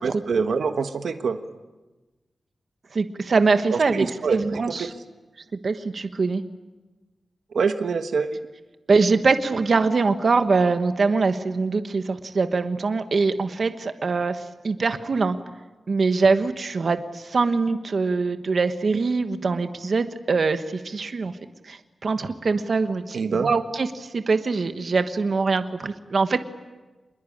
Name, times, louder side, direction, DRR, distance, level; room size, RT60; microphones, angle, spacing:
voice 1, 0.0-1.4 3.7-4.9 7.5-8.4 23.1-23.5, right 5 dB, 85° right, 7 dB, 1.3 m, -25 dB
voice 2, 2.9-4.9 5.6-6.4 8.9-15.4 15.9-21.3 21.7-26.4, right 4 dB, 55° right, 8 dB, 1.3 m, -23 dB
27.0 x 21.5 x 8.8 m, 1.2 s
wide cardioid pair, 125°, 0 cm